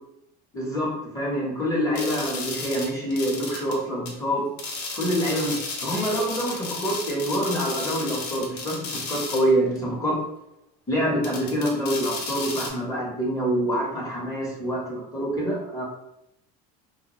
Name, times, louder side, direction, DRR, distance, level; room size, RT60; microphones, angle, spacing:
voice 1, 0.5-4.5 4.9-10.2 10.9-15.8, equal, 15° left, -4 dB, 0.9 m, -26 dB
sound 1, 2.0-3.8 4.1-4.2 4.6-9.5 9.8-9.9 11.2-12.7, left 3 dB, 90° left, 0.7 m, -33 dB
2.2 x 2.2 x 2.9 m, 0.84 s
supercardioid pair, 110°, 20 cm